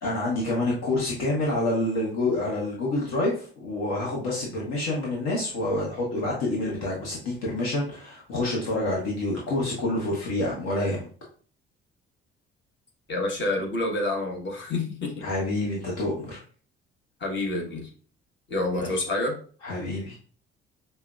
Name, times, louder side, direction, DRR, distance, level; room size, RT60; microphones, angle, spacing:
voice 1, 0.0-11.1 15.2-16.4 18.7-18.9 19.6-20.2, left 2 dB, 55° left, -3 dB, 1.0 m, -27 dB
voice 2, 13.1-15.2 17.2-17.9 18.5-19.4, left 2 dB, 35° left, 0 dB, 1.3 m, -28 dB
5.4 x 2.1 x 2.4 m, 0.43 s
figure-of-eight pair, 45°, 32 cm